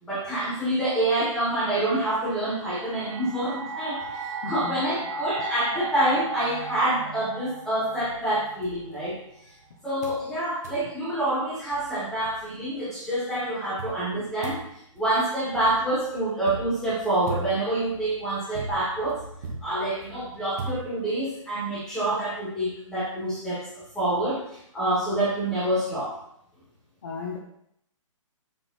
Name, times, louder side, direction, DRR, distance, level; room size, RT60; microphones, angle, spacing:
voice 1, 0.0-9.2 9.8-14.7 14.9-19.2 19.6-23.7 23.9-26.1, right 1 dB, 5° left, -9 dB, 1.8 m, -27 dB
sound 1, 2.1-9.2, right 3 dB, 75° right, 0.9 m, -36 dB
voice 2, 4.4-4.7 27.0-27.4, left 5 dB, 35° left, -1 dB, 0.7 m, -34 dB
sound 2, 8.0-9.6 10.0-10.3 10.6-10.9 11.4-11.5 11.7-12.8 13.8-21.4, right 2 dB, 30° right, 1.1 m, -40 dB
7.1 x 3.7 x 4.1 m, 0.73 s
hypercardioid pair, 175°, 17 cm